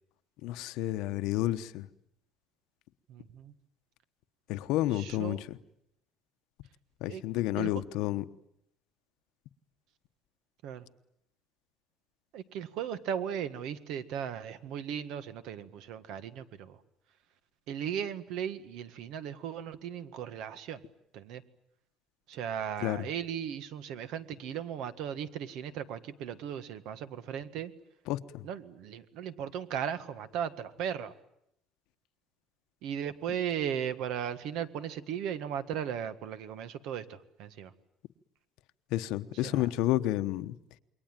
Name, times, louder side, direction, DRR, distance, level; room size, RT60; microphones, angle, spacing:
voice 1, 0.4-1.9 4.5-5.6 7.0-8.2 22.8-23.1 28.1-28.4 38.9-40.6, left 15 dB, 75° left, 1.1 m, -30 dB
voice 2, 3.1-3.5 4.9-5.4 7.1-7.2 7.6-7.7 10.6-10.9 12.3-16.8 17.7-20.8 21.1-21.4 22.3-27.7 28.4-31.1 32.8-37.7 39.4-39.6, right 9 dB, 65° right, 1.7 m, -37 dB
28.0 x 22.5 x 9.1 m
cardioid pair, 180°, 0 cm